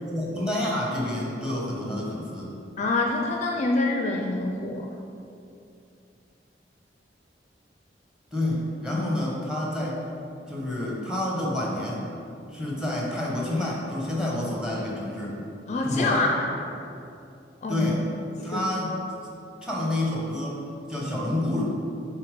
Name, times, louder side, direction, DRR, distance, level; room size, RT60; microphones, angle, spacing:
voice 1, 0.1-2.5 8.3-10.0 10.5-12.0 12.5-15.4 15.8-16.3 17.7-18.1 18.4-19.0 19.6-21.6, left 1 dB, 5° right, -3 dB, 1.1 m, -28 dB
voice 2, 2.8-4.9 15.7-16.6 17.6-17.9 18.5-18.6, left 2 dB, 40° left, 1 dB, 0.4 m, -26 dB
6.8 x 3.3 x 5.1 m, 2.6 s
head